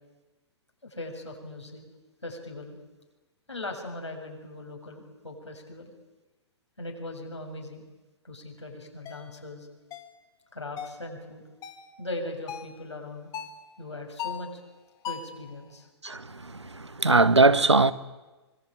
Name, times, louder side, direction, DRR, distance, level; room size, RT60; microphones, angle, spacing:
voice 1, 0.8-1.8 2.2-2.8 3.5-5.9 6.8-7.8 8.2-9.7 10.5-11.4 12.0-13.3 13.8-14.6 15.0-15.9 16.6-16.7, left 2 dB, 80° left, 7.3 m, -39 dB
sound 1, 9.1-9.2 9.9-10.2 10.8-11.0 11.6-11.9 12.5-12.8 13.3-13.6 14.2-14.5 15.0-15.4, left 8 dB, 25° left, 2.3 m, -38 dB
voice 2, 16.0-17.9, right 3 dB, 80° right, 1.3 m, -21 dB
25.0 x 24.0 x 9.3 m
figure-of-eight pair, 110°, 14 cm